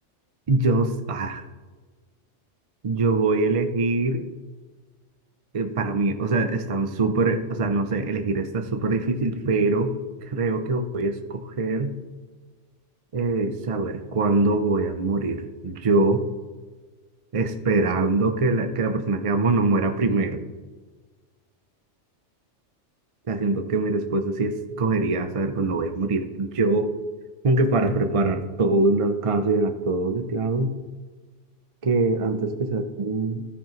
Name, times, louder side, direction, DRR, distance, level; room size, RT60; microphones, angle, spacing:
voice 1, 0.5-1.4 2.8-4.2 5.5-9.9 10.3-11.9 13.1-16.2 17.3-20.4 23.3-26.9 27.4-30.7 31.8-33.4, right 3 dB, 40° right, 7 dB, 0.5 m, -23 dB
13.5 x 9.7 x 3.1 m, 1.3 s
omnidirectional pair, 1.3 m